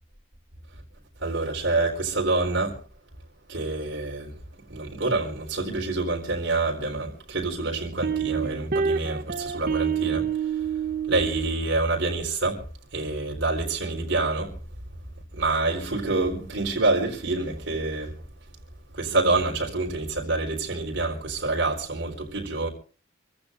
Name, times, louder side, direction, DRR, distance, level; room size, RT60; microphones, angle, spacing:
voice 1, 1.2-2.8 3.5-4.4 4.7-10.2 11.1-12.6 12.9-14.6 15.3-18.1 18.9-22.7, right 3 dB, 70° right, 4.1 m, -27 dB
sound 1, 8.0-11.5, right 7 dB, 50° right, 0.9 m, -27 dB
28.0 x 15.5 x 2.6 m
head